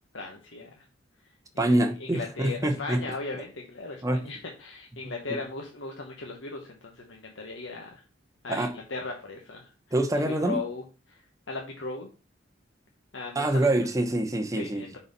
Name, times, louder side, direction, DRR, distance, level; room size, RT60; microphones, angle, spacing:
voice 1, 0.1-0.8 1.5-8.0 8.4-9.7 10.2-10.8 11.1-12.1 13.1-13.7 14.6-15.0, left 3 dB, 85° left, 1.1 m, -37 dB
voice 2, 1.6-3.0 4.0-4.2 5.3-5.4 8.5-8.7 9.9-10.6 13.3-14.9, right 1 dB, 20° right, 0.9 m, -25 dB
5.5 x 4.2 x 5.3 m
head